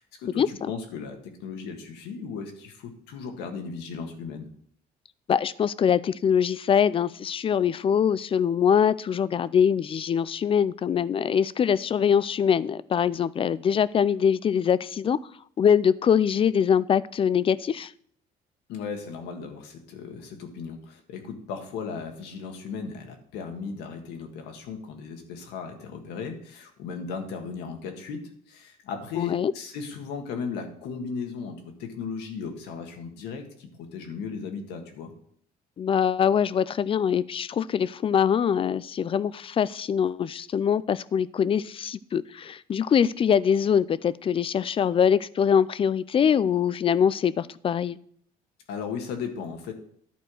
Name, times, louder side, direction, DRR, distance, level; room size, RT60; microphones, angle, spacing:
voice 1, 0.0-4.5 18.7-35.1 48.7-49.7, left 5 dB, 90° left, 4 dB, 1.7 m, -36 dB
voice 2, 5.3-15.2 15.6-17.9 29.2-29.5 35.8-48.0, left 8 dB, 30° left, 18 dB, 0.4 m, -23 dB
11.0 x 4.5 x 6.3 m, 0.62 s
cardioid pair, 110°, 17 cm